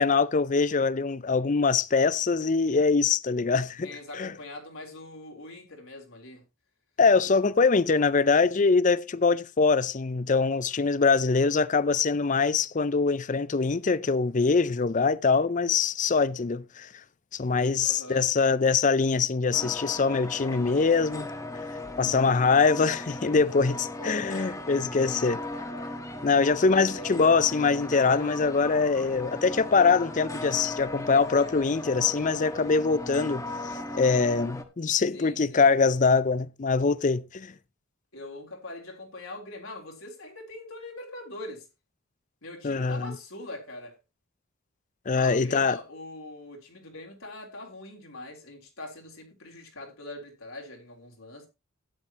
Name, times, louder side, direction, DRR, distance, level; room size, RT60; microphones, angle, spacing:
voice 1, 0.0-3.9 4.2-4.3 7.0-16.9 17.3-21.3 22.0-25.4 26.2-37.5 42.6-43.1 45.1-45.8, left 4 dB, 35° left, 0.5 m, -23 dB
voice 2, 3.8-6.4 17.8-18.2 23.6-24.2 26.7-27.1 35.1-35.7 38.1-41.7 42.4-44.0 45.1-51.5, left 2 dB, 65° left, 3.6 m, -42 dB
sound 1, 19.5-34.6, left 2 dB, 15° left, 1.2 m, -37 dB
13.0 x 10.0 x 2.9 m
head